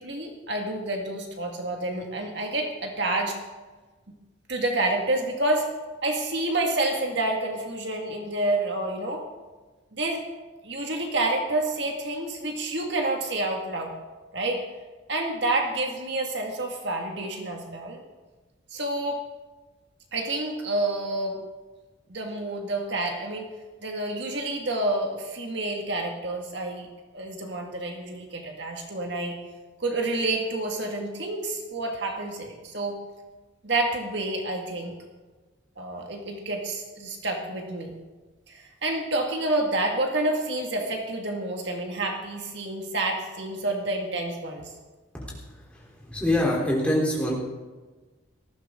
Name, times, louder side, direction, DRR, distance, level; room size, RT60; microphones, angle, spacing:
voice 1, 0.0-3.4 4.1-4.2 4.5-5.7 6.0-9.2 9.9-10.2 10.6-13.9 14.3-14.6 15.1-18.0 18.7-19.2 20.1-21.4 22.1-23.5 23.8-26.9 27.1-29.4 29.8-33.0 33.6-34.9 35.8-37.9 38.5-44.7, right 2 dB, 60° right, 2 dB, 2.0 m, -28 dB
voice 2, 46.1-47.3, left 1 dB, 5° left, -3 dB, 3.6 m, -24 dB
18.5 x 14.5 x 3.8 m, 1.3 s
head